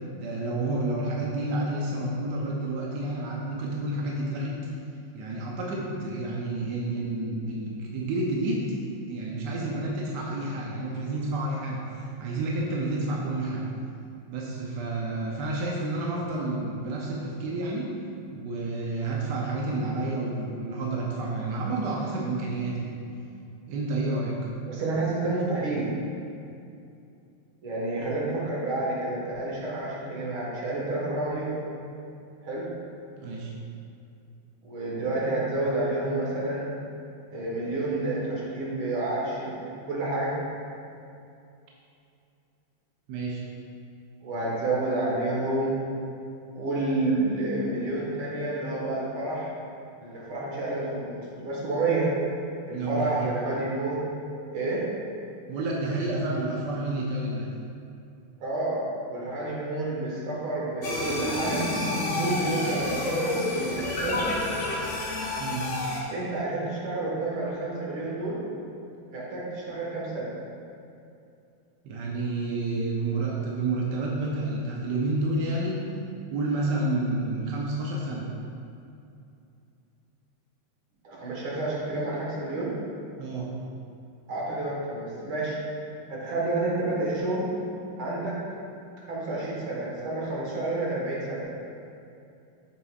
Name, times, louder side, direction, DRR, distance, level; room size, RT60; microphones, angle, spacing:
voice 1, 0.2-4.6 5.1-8.7 9.1-13.7 14.3-17.9 18.3-23.0 23.7-24.4 33.2-33.5 43.1-43.4 52.7-53.3 55.5-57.5 65.4-65.7 71.8-75.9 76.3-78.3 83.2-83.5, right 2 dB, 65° right, -3 dB, 1.2 m, -30 dB
voice 2, 24.7-25.9 27.6-31.6 32.4-32.6 34.6-36.7 37.3-40.3 44.2-45.7 46.5-49.6 50.0-52.1 52.6-54.1 54.5-54.8 58.4-61.6 62.2-64.2 66.1-68.4 69.1-70.3 81.0-82.7 84.3-85.6 86.1-87.5 88.0-88.3 89.1-91.4, right 2 dB, 80° right, -5 dB, 2.4 m, -29 dB
sound 1, 60.8-66.0, left 1 dB, 45° left, 1.1 m, -29 dB
8.2 x 6.9 x 2.4 m, 2.6 s
omnidirectional pair, 2.3 m